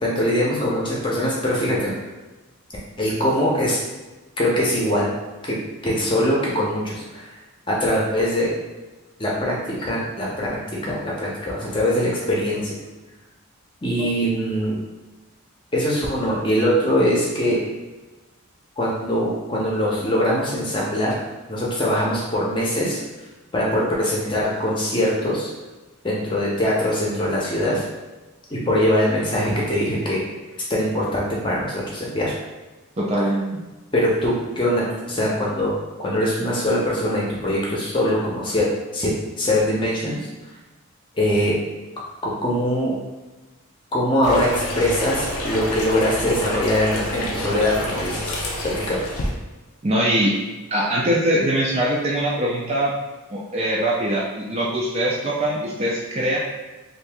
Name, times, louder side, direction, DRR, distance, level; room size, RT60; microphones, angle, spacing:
voice 1, 0.0-2.0 3.0-3.8 4.4-5.1 5.4-5.6 5.8-7.2 7.7-8.5 9.2-10.5 10.8-12.8 13.8-14.8 15.7-17.6 18.8-21.1 21.5-23.0 23.5-25.5 26.0-27.8 28.5-30.2 30.7-32.3 33.9-35.8 36.0-38.7 38.9-40.2 41.2-41.6 42.2-43.0 43.9-48.3 48.6-49.0, equal, 20° left, -5 dB, 0.7 m, -22 dB
voice 2, 33.0-33.5 49.8-50.3 50.7-52.9 53.3-56.4, right 1 dB, 25° right, -4 dB, 0.4 m, -22 dB
sound 1, 44.2-49.3, left 1 dB, 90° left, 0.6 m, -28 dB
2.8 x 2.7 x 3.4 m, 1.1 s
head